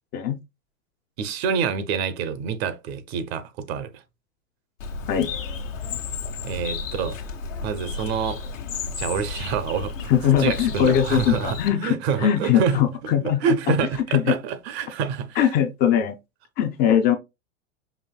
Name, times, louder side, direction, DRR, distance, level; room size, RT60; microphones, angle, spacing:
voice 1, 1.2-4.0 6.4-7.2 7.6-8.4 9.0-10.1 10.4-12.9 13.2-15.5, right 7 dB, 55° right, 0.7 m, -27 dB
Bird, 4.8-11.7, left 5 dB, 80° left, 1.1 m, -33 dB
voice 2, 10.1-13.7 14.1-14.3 15.4-16.2 16.6-17.1, left 9 dB, 25° left, 0.4 m, -21 dB
5.5 x 2.6 x 2.2 m
hypercardioid pair, 110°, 38 cm